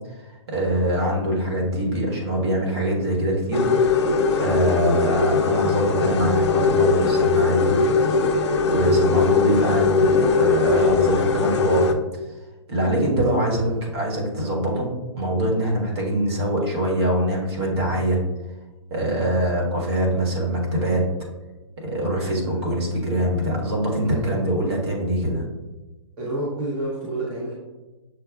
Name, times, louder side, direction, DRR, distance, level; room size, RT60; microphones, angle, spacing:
voice 1, 0.2-7.8 8.0-11.9 12.7-13.6 13.9-18.2 18.9-21.1 21.8-25.4, right 1 dB, 55° right, -2 dB, 1.5 m, -24 dB
sound 1, 3.5-11.9, left 4 dB, 60° left, 0.4 m, -20 dB
sound 2, 3.7-4.4 4.7-6.4 6.7-8.4 8.7-10.4 10.7-11.6, left 3 dB, 25° left, 1.0 m, -35 dB
voice 2, 13.3-13.9 22.4-22.9 24.0-24.5 26.2-27.5, right 1 dB, 20° right, -6 dB, 0.6 m, -30 dB
6.5 x 2.2 x 2.3 m, 1.1 s
hypercardioid pair, 160°, 16 cm